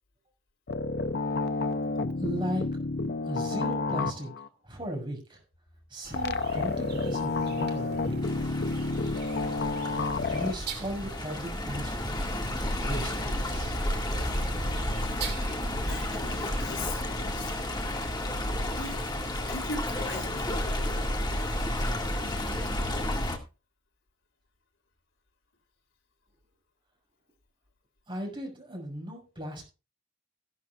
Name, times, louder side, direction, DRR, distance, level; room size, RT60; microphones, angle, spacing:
sound 1, 0.7-4.5 6.1-10.5, left 3 dB, 55° left, 0.7 m, -30 dB
voice 1, 2.2-2.8 3.2-4.3 4.6-5.4 5.9-8.3 10.3-12.2 12.8-13.8 28.1-29.6, equal, 25° right, 1 dB, 6.0 m, -36 dB
sound 2, 6.0-16.7, right 4 dB, 50° right, 2.5 m, -43 dB
Stream, 8.2-23.4, left 1 dB, 20° left, 2.0 m, -31 dB
voice 2, 14.9-17.7 18.7-21.1, left 2 dB, 80° left, 2 dB, 5.3 m, -41 dB
15.0 x 12.0 x 2.4 m, 0.32 s
head